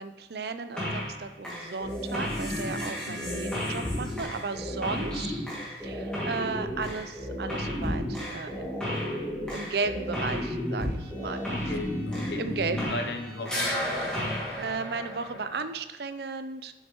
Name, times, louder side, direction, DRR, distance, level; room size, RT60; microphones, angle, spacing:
voice 1, 0.0-5.3 5.8-8.9 9.5-11.5 12.4-12.9 14.0-16.7, right 4 dB, 65° right, 10 dB, 0.5 m, -35 dB
sound 1, 0.8-1.2 1.4-13.2 13.5-15.7, left 1 dB, 5° left, 2.1 m, -32 dB
voice 2, 3.1-3.4 11.5-12.4 12.7-13.7, left 2 dB, 70° left, 7 dB, 0.7 m, -36 dB
Bowed string instrument, 9.5-14.1, right 1 dB, 30° right, 1.7 m, -54 dB
7.2 x 6.6 x 3.0 m, 1.2 s
head